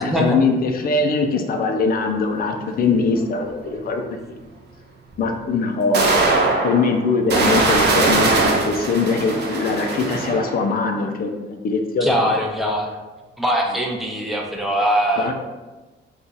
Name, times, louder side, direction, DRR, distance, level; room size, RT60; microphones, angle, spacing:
voice 1, 0.0-4.4 5.2-6.1 6.6-12.3 15.2-15.3, left 4 dB, 45° left, 4 dB, 0.5 m, -22 dB
sound 1, 3.2-3.3 5.1-5.2 5.9-10.6, right 3 dB, 60° right, 0.7 m, -20 dB
voice 2, 12.0-13.0 13.4-15.3, equal, ahead, -1 dB, 0.6 m, -21 dB
2.7 x 2.4 x 3.8 m, 1.1 s
cardioid pair, 90°, 20 cm